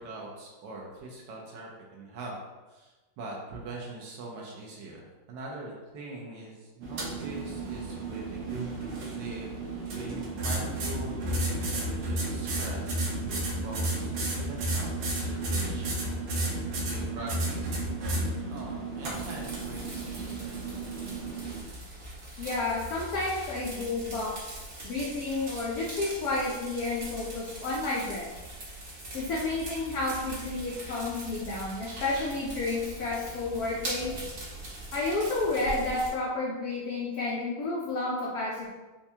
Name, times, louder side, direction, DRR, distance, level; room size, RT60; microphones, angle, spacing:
voice 1, 0.0-2.4 2.7-8.5 9.1-9.5 9.9-17.7 18.5-20.9, right 2 dB, 70° right, -3 dB, 1.2 m, -42 dB
sound 1, 6.8-21.6, right 2 dB, 90° right, 1.5 m, -32 dB
sound 2, 19.0-36.1, right 2 dB, 40° right, 1.2 m, -41 dB
voice 2, 22.4-28.3 29.1-34.2 34.9-38.7, left 2 dB, 80° left, -5 dB, 0.8 m, -31 dB
4.4 x 2.2 x 2.7 m, 1.2 s
omnidirectional pair, 2.3 m